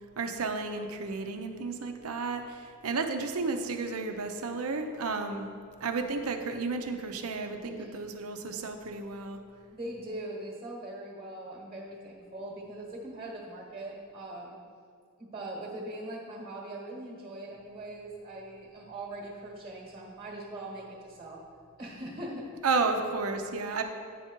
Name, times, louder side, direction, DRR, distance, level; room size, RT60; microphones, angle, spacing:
voice 1, 0.2-5.5 5.8-9.4 22.6-23.8, right 4 dB, 80° right, 6 dB, 0.7 m, -32 dB
voice 2, 7.6-8.0 9.7-14.6 15.2-21.4 21.8-22.5, right 1 dB, 25° right, -2 dB, 1.2 m, -41 dB
9.1 x 5.8 x 4.5 m, 2.3 s
head